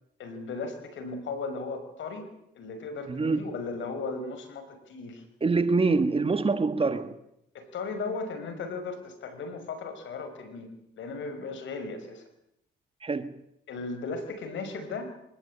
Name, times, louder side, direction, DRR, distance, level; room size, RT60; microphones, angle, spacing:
voice 1, 0.2-2.2 2.5-5.2 7.5-10.7 11.0-12.2 13.7-15.1, left 4 dB, 70° left, 5.7 m, -36 dB
voice 2, 3.1-3.4 5.4-7.2 13.0-13.3, right 3 dB, 30° right, 1.8 m, -25 dB
24.5 x 20.0 x 8.9 m
cardioid pair, 90°, 20 cm